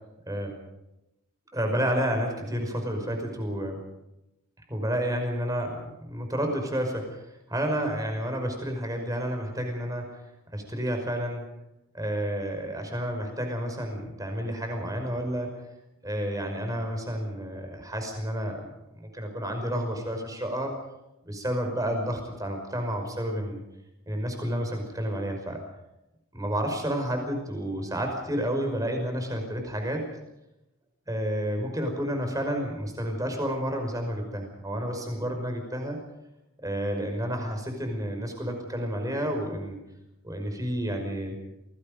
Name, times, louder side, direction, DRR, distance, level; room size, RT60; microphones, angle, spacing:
voice 1, 1.5-3.8 4.7-10.2 10.5-11.5 11.9-15.5 16.0-18.7 19.0-20.7 21.3-23.6 24.1-25.6 26.3-30.0 31.1-36.0 36.6-39.8 40.2-41.3, equal, 15° right, 4 dB, 5.5 m, -30 dB
28.0 x 20.5 x 5.3 m, 0.92 s
head